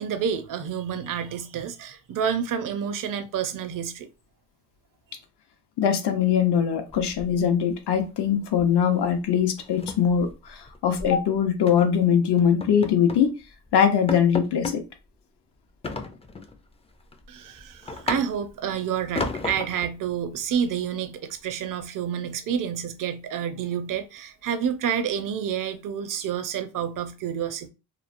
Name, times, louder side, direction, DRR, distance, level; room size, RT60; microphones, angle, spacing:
voice 1, 0.0-4.1 17.3-27.7, right 8 dB, 50° right, 0.5 m, -29 dB
voice 2, 5.8-13.3 13.7-14.8, left 8 dB, 75° left, 0.7 m, -22 dB
sound 1, 6.9-7.7 8.0-8.3 8.6-8.8 9.1-9.2 9.6-11.1 11.7-11.9 12.4-13.3 13.7-13.8 14.1-14.8 15.8-16.6 17.0-18.6 19.2-19.9, left 3 dB, 15° left, 0.3 m, -33 dB
3.0 x 2.0 x 2.4 m
cardioid pair, 65°, 40 cm